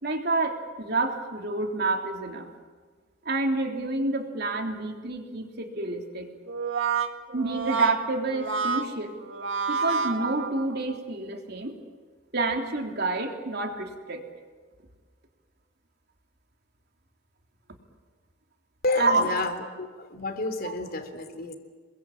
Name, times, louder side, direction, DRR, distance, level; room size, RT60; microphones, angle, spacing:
voice 1, 0.0-2.5 3.2-6.3 7.3-9.2 9.7-11.8 12.3-14.2 19.0-19.3 20.6-20.7, right 2 dB, 50° right, 3 dB, 3.4 m, -28 dB
Brass instrument, 6.5-11.0, right 5 dB, 70° right, 2.0 m, -29 dB
voice 2, 18.8-21.5, left 2 dB, 45° left, 7 dB, 3.2 m, -30 dB
28.0 x 22.5 x 8.7 m, 1.5 s
head